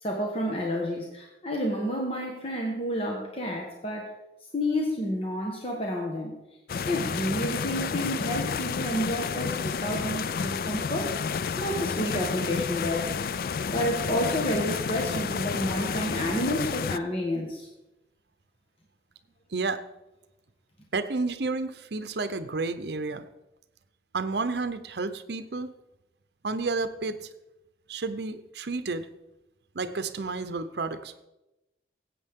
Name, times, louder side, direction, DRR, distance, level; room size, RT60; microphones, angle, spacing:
voice 1, 0.0-4.1 4.5-6.4 6.9-11.1 11.6-13.1 13.7-17.7, equal, 30° left, 0 dB, 1.3 m, -30 dB
sound 1, 6.7-17.0, left 6 dB, 55° left, 0.3 m, -30 dB
voice 2, 19.5-19.8 20.9-23.2 24.1-25.7 26.4-27.3 27.9-29.1 29.7-31.1, right 3 dB, 70° right, 11 dB, 0.7 m, -31 dB
15.5 x 8.4 x 3.6 m, 0.95 s
head